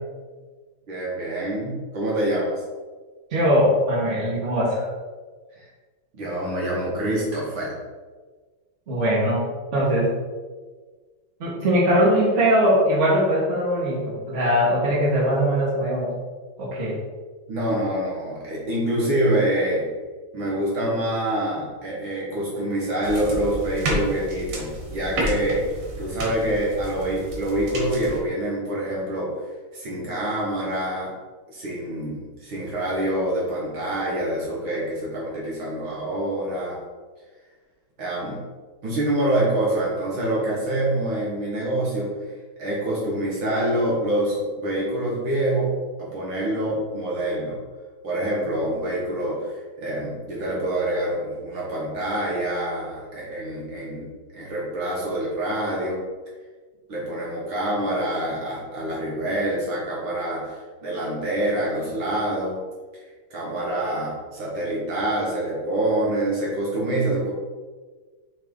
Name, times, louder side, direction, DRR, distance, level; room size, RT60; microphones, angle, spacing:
voice 1, 0.9-2.5 5.5-5.7 6.1-7.7 17.5-19.9 20.3-29.5 29.7-31.1 31.5-36.8 38.0-38.4 38.8-45.7 46.0-47.6 48.0-56.0 56.9-62.6 63.3-67.3, right 1 dB, 65° right, -5 dB, 2.0 m, -26 dB
voice 2, 3.3-4.9 8.9-9.4 9.7-10.1 11.4-16.1 16.6-17.0, equal, 35° right, -5 dB, 2.0 m, -21 dB
sound 1, 23.0-28.2, right 1 dB, 85° right, 2.4 m, -31 dB
6.6 x 3.3 x 5.3 m, 1.4 s
omnidirectional pair, 2.4 m